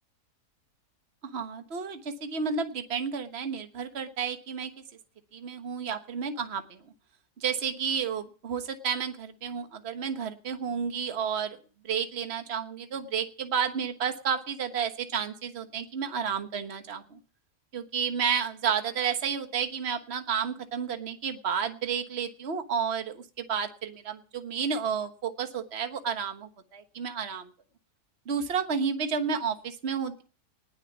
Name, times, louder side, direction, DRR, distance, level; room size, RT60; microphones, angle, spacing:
voice 1, 1.2-4.7 5.3-6.8 7.4-11.6 11.8-17.2 17.7-27.5 28.3-30.2, right 6 dB, 45° right, 7 dB, 1.5 m, -31 dB
19.0 x 7.1 x 7.2 m, 0.39 s
omnidirectional pair, 1.7 m